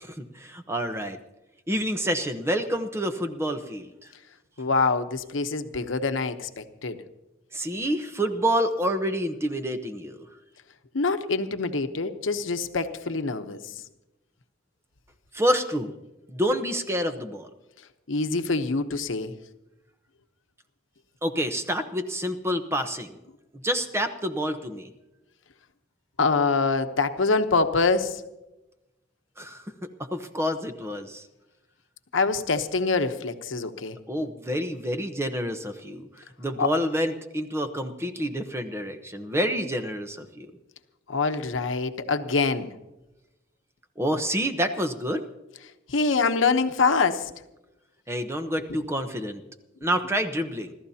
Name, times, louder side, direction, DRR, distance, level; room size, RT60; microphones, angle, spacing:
voice 1, 0.0-1.2 1.7-3.9 7.5-10.2 15.3-16.0 16.3-17.5 21.2-23.2 23.5-24.9 29.4-31.3 34.1-36.1 36.4-40.5 44.0-45.2 48.1-49.4 49.8-50.7, equal, 15° right, 0.9 m, -28 dB
voice 2, 4.6-7.0 10.9-13.7 18.1-19.3 26.2-28.2 32.1-34.0 36.6-36.7 41.1-42.7 45.9-47.3, left 4 dB, 80° left, 0.9 m, -25 dB
27.5 x 14.0 x 2.8 m
head